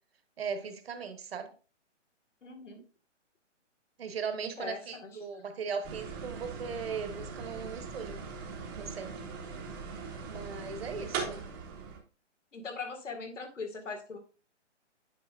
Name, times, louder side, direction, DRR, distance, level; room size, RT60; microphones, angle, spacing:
voice 1, 0.4-1.5 4.0-8.2 8.8-9.1 10.3-11.4, right 6 dB, 55° right, 8 dB, 1.1 m, -38 dB
voice 2, 2.4-2.8 4.4-5.2 12.5-14.2, left 4 dB, 80° left, 5 dB, 2.0 m, -41 dB
sound 1, 5.8-12.0, right 5 dB, 15° right, 0.8 m, -40 dB
8.5 x 5.1 x 2.5 m, 0.36 s
hypercardioid pair, 155°, 37 cm